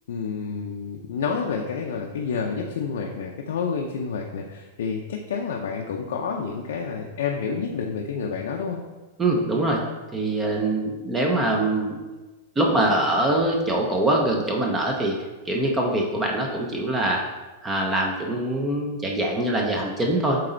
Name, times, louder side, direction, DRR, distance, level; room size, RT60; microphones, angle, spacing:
voice 1, 0.1-8.8, left 5 dB, 80° left, 0 dB, 0.7 m, -29 dB
voice 2, 9.2-9.8 10.1-12.0 12.6-15.1 15.4-17.2 17.6-20.4, right 1 dB, 10° right, 0 dB, 0.6 m, -23 dB
7.7 x 4.1 x 3.9 m, 1.2 s
supercardioid pair, 175°, 0 cm